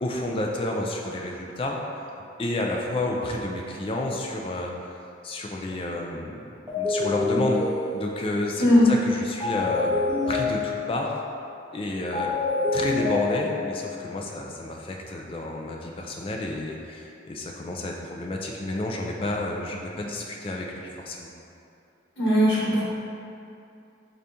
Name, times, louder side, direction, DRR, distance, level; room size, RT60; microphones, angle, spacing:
voice 1, 0.0-1.8 2.4-4.9 5.2-6.4 6.7-7.7 7.9-9.9 10.3-11.1 11.7-12.3 12.7-21.3, left 1 dB, 30° left, 0 dB, 0.3 m, -30 dB
sound 1, 6.7-8.4 9.4-11.1 12.1-13.8, left 3 dB, 15° right, 0.8 m, -27 dB
voice 2, 22.2-22.8, left 1 dB, 80° left, -8 dB, 1.2 m, -19 dB
3.9 x 2.8 x 3.4 m, 2.7 s
head